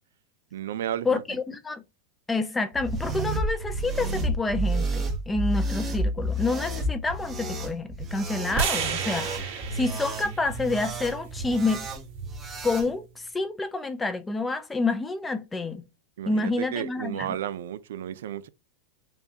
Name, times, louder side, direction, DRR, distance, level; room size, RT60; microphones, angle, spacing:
voice 1, 0.5-1.2 16.2-18.5, right 10 dB, 90° right, 0.4 m, -33 dB
voice 2, 1.1-1.8 2.3-11.9 12.6-13.0 13.3-15.9 16.3-17.4, left 3 dB, 10° left, 0.4 m, -28 dB
sound 1, 2.7-12.9, right 1 dB, 15° right, 0.8 m, -30 dB
sound 2, 8.5-12.7, right 7 dB, 50° right, 2.0 m, -33 dB
5.5 x 2.3 x 2.7 m
supercardioid pair, 155°, 0 cm